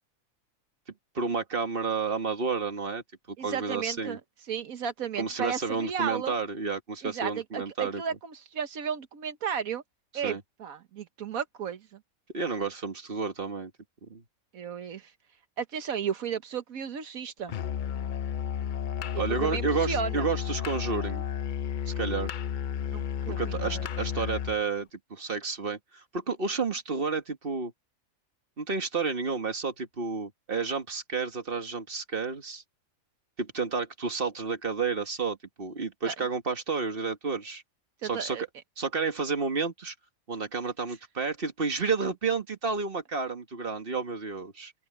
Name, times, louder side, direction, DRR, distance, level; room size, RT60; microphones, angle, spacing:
voice 1, 1.1-3.0 3.4-4.2 5.2-8.0 10.2-10.4 12.3-13.7 14.0-14.2 19.2-21.2 21.9-22.3 23.3-27.7 28.6-32.6 33.4-37.6 38.0-38.4 38.8-39.9 40.3-44.7, right 4 dB, 40° right, 1.9 m, -31 dB
voice 2, 3.4-4.2 4.5-6.4 7.0-9.8 10.1-12.0 14.5-15.1 15.6-17.5 19.1-20.2 22.9-23.9 36.0-36.1 38.0-38.4, right 7 dB, 80° right, 1.5 m, -34 dB
Musical instrument, 17.5-24.6, left 8 dB, 70° left, 0.4 m, -32 dB
open air
omnidirectional pair, 1.5 m